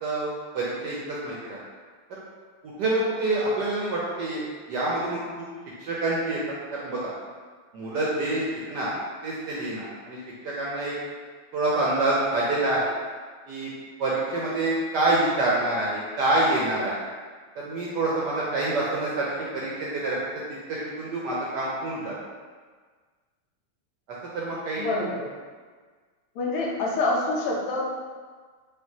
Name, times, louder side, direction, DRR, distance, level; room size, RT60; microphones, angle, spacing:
voice 1, 0.0-1.6 2.1-2.2 2.6-4.4 4.7-5.2 5.8-6.4 6.7-7.1 7.7-8.9 9.2-10.2 10.4-10.9 11.5-12.9 13.5-13.7 14.0-17.0 17.6-19.3 19.5-20.2 20.7-22.1 24.3-24.9, right 2 dB, 70° right, -5 dB, 1.0 m, -26 dB
voice 2, 24.8-25.2 26.4-27.8, left 2 dB, 80° left, -2 dB, 1.6 m, -26 dB
5.5 x 2.5 x 2.7 m, 1.5 s
omnidirectional pair, 2.4 m